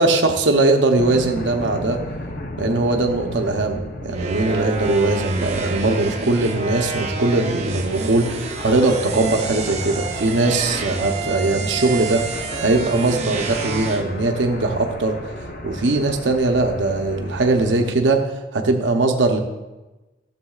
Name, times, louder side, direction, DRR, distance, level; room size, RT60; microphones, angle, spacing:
voice 1, 0.0-2.0 2.6-15.2 15.6-19.4, right 2 dB, 90° right, 4 dB, 0.7 m, -20 dB
sound 1, 1.0-17.9, left 1 dB, 50° left, 0.7 m, -35 dB
sound 2, 4.1-14.0, right 4 dB, 35° right, 0.7 m, -29 dB
11.5 x 6.9 x 2.4 m, 1.1 s
head